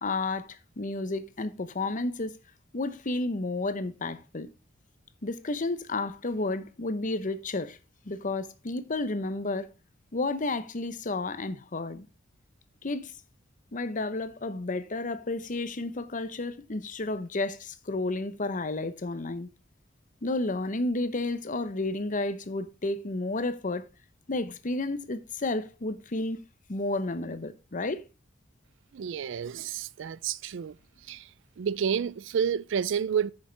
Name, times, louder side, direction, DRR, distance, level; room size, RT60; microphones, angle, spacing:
voice 1, 0.0-2.4 2.7-4.5 5.2-7.8 8.0-9.7 10.1-12.1 12.8-13.1 13.7-19.5 20.2-23.8 24.3-26.4 26.7-28.0, left 2 dB, 40° left, 0.9 m, -31 dB
voice 2, 28.9-30.8 31.1-31.3 31.6-33.3, right 7 dB, 70° right, 0.4 m, -30 dB
9.6 x 6.4 x 3.3 m
head